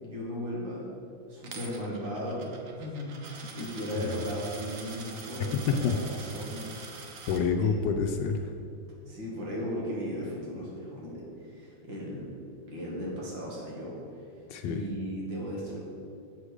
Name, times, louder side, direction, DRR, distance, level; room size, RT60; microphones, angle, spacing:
voice 1, 0.0-0.8 1.3-2.5 2.8-6.8 7.6-7.7 9.0-12.3 12.7-14.0 14.6-15.8, equal, 85° right, -5 dB, 2.7 m, -36 dB
Coin (dropping), 1.4-7.4, right 4 dB, 55° right, 1.1 m, -45 dB
voice 2, 5.7-6.0 7.3-8.5 14.5-14.8, left 5 dB, 75° left, 5 dB, 1.2 m, -27 dB
7.7 x 5.0 x 6.4 m, 2.7 s
omnidirectional pair, 2.0 m